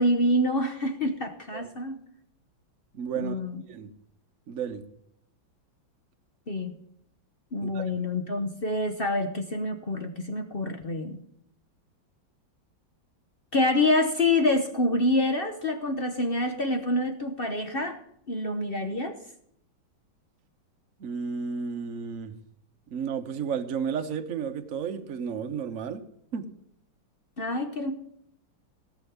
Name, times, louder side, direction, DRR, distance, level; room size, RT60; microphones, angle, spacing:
voice 1, 0.0-2.0 3.2-3.6 6.5-6.7 7.5-11.2 13.5-18.0 18.3-19.2 27.4-27.9, left 1 dB, 40° left, 6 dB, 0.9 m, -26 dB
voice 2, 2.9-3.4 3.7-3.9 4.5-4.8 7.6-8.0 21.0-22.3 22.9-26.0 26.3-26.5, right 6 dB, 50° right, 6 dB, 1.2 m, -32 dB
17.0 x 6.4 x 7.0 m, 0.72 s
omnidirectional pair, 2.1 m